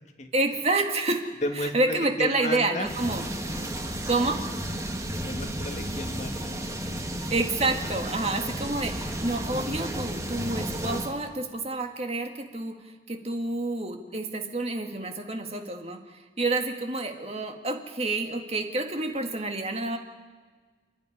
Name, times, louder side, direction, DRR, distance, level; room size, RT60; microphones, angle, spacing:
voice 1, 0.3-1.2 1.6-3.2 4.1-4.4 7.3-12.8 13.1-20.0, right 2 dB, 35° right, 4 dB, 1.9 m, -28 dB
voice 2, 1.4-2.9 3.5-3.7 5.2-6.6, left 1 dB, 40° left, 4 dB, 1.8 m, -33 dB
sound 1, 2.8-11.1, right 1 dB, 15° right, 1.5 m, -33 dB
29.5 x 10.5 x 9.9 m, 1.4 s
head